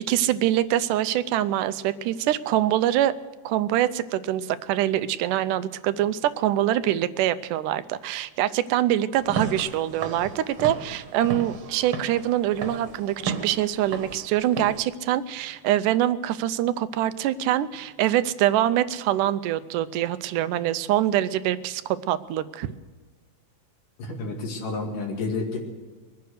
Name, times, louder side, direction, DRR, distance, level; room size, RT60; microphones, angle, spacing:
voice 1, 0.1-3.1 3.5-22.7, right 12 dB, 85° right, 14 dB, 2.2 m, -24 dB
Walk footsteps / Siren, 9.2-14.8, right 5 dB, 50° right, 1.8 m, -35 dB
voice 2, 24.0-25.6, left 3 dB, 90° left, 1 dB, 4.0 m, -30 dB
22.5 x 9.5 x 6.5 m, 1.4 s
omnidirectional pair, 3.6 m